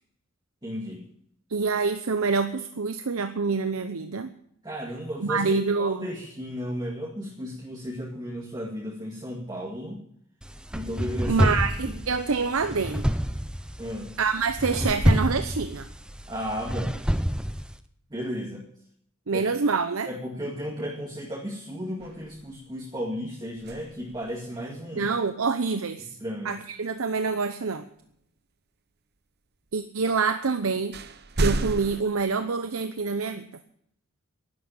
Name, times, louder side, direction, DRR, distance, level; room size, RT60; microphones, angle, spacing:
voice 1, 0.6-1.1 4.6-10.0 10.7-11.5 11.9-12.0 13.8-14.2 16.3-17.0 18.1-18.6 19.3-19.5 20.1-25.1 26.2-26.5, equal, 20° right, -2 dB, 2.2 m, -34 dB
voice 2, 1.5-4.3 5.2-6.1 11.3-13.0 14.2-15.9 19.3-20.1 24.9-26.2 26.4-27.9 29.7-31.0 31.4-33.5, right 4 dB, 85° right, 9 dB, 0.8 m, -26 dB
sound 1, 10.4-17.8, equal, 5° right, 0.7 m, -28 dB
sound 2, 22.0-22.8 23.5-24.5 28.0-28.1 30.2-30.3 30.9-32.0, right 2 dB, 50° right, 0.9 m, -31 dB
11.5 x 11.5 x 8.9 m, 0.68 s
head